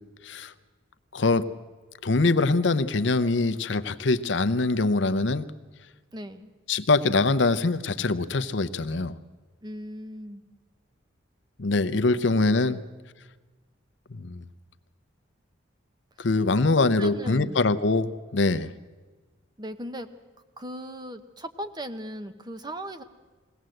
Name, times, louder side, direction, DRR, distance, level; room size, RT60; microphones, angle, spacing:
voice 1, 1.1-1.5 2.0-5.5 6.7-9.2 11.6-12.8 14.1-14.4 16.2-18.7, left 3 dB, 60° left, 13 dB, 0.7 m, -23 dB
voice 2, 6.1-6.5 9.6-10.4 12.1-12.2 16.2-16.3 16.8-17.7 19.6-20.1 20.6-23.0, equal, 20° right, 10 dB, 1.0 m, -38 dB
21.5 x 17.5 x 7.8 m, 1.3 s
head